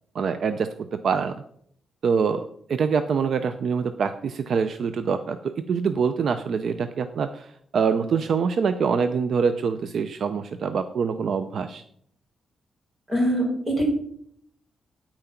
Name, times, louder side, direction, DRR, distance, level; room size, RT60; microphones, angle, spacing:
voice 1, 0.1-1.3 2.0-11.8, right 6 dB, 60° right, 10 dB, 0.6 m, -25 dB
voice 2, 13.1-13.8, equal, 15° right, -2 dB, 5.7 m, -23 dB
9.3 x 8.8 x 5.8 m, 0.67 s
wide cardioid pair, 135°, 0 cm